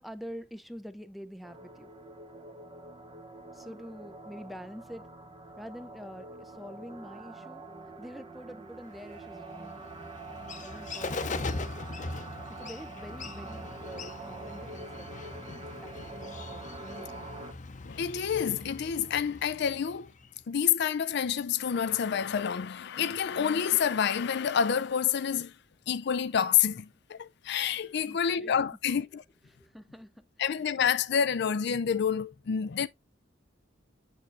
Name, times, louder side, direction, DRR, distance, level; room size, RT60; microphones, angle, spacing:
voice 1, 0.0-1.9 3.5-5.1 5.6-7.6 8.0-9.8 10.6-11.4 12.5-17.3 28.1-28.5 28.9-29.0 29.5-30.3, equal, ahead, 0.6 m, -46 dB
sound 1, 1.4-17.5, right 2 dB, 30° right, 0.9 m, -45 dB
Bird, 8.9-20.4, left 3 dB, 40° left, 0.8 m, -41 dB
voice 2, 17.8-20.1 20.5-25.5 25.9-29.2 30.4-32.9, left 8 dB, 60° left, 0.4 m, -28 dB
7.3 x 6.7 x 2.6 m
head